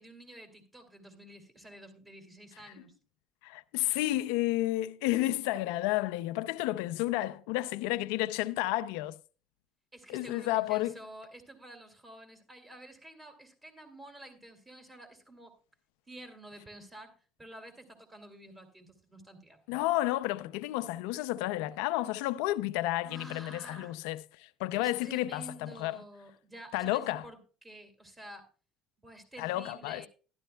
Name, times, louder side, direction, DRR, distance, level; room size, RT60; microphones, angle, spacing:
voice 1, 0.0-2.9 9.9-15.5 16.1-17.1 17.4-19.6 23.0-23.9 24.8-28.5 29.0-30.1, right 1 dB, 15° right, 2.5 m, -50 dB
voice 2, 3.4-9.2 10.1-10.9 19.7-26.0 26.7-27.3 29.4-30.0, left 16 dB, 85° left, 0.4 m, -31 dB
12.0 x 11.5 x 2.2 m
supercardioid pair, 95°, 0 cm